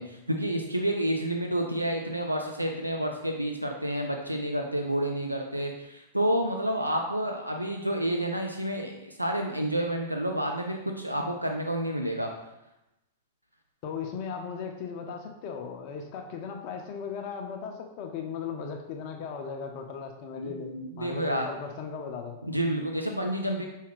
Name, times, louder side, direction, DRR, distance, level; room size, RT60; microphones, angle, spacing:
voice 1, 0.0-12.3 20.4-21.5 22.5-23.7, right 1 dB, 85° right, 3 dB, 0.4 m, -29 dB
voice 2, 13.8-22.4, left 6 dB, 45° left, 4 dB, 0.5 m, -37 dB
4.7 x 2.7 x 3.3 m, 0.91 s
figure-of-eight pair, 95°, 0 cm